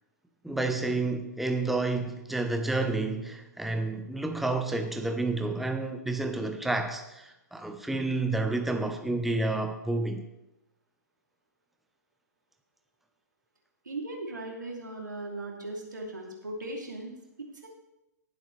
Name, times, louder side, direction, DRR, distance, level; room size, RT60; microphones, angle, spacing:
voice 1, 0.4-10.2, right 2 dB, ahead, 0.8 m, -30 dB
voice 2, 13.8-17.7, right 2 dB, 85° right, 2.9 m, -38 dB
19.0 x 8.0 x 3.3 m
figure-of-eight pair, 120°, 10 cm